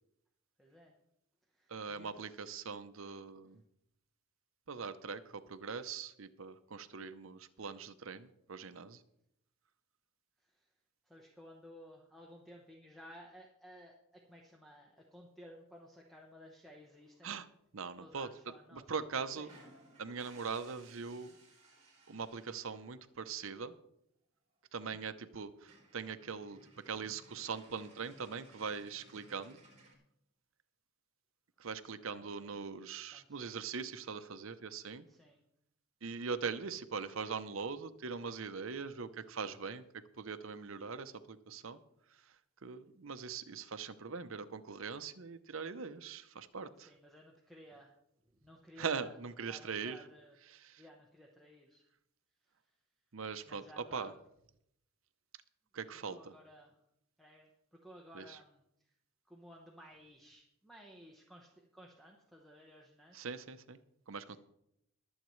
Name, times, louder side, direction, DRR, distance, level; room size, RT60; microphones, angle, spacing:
voice 1, 0.6-0.9 1.5-2.2 10.6-10.7 11.1-17.4 18.0-18.8 19.4-19.5 32.0-32.6 33.1-33.5 35.1-35.4 46.8-47.9 48.4-49.2 49.5-50.3 50.8-51.8 53.5-54.1 56.1-56.7 57.2-58.6 59.3-63.3, equal, ahead, -1 dB, 0.9 m, -56 dB
voice 2, 1.7-3.6 4.7-9.0 17.2-17.5 17.7-18.3 18.7-19.5 20.0-21.3 22.1-23.7 24.7-26.6 26.9-29.6 31.6-35.1 36.0-39.8 40.2-41.8 42.6-46.9 48.8-50.0 50.5-50.8 53.1-54.1 55.7-56.3 58.1-58.4 63.1-63.8 64.1-64.4, right 5 dB, 60° right, 11 dB, 0.7 m, -41 dB
sound 1, 19.4-23.0 24.5-24.6 24.9-25.0 25.3-25.4 25.6-29.9, right 2 dB, 30° right, 3.4 m, -61 dB
22.0 x 8.0 x 3.2 m, 0.79 s
head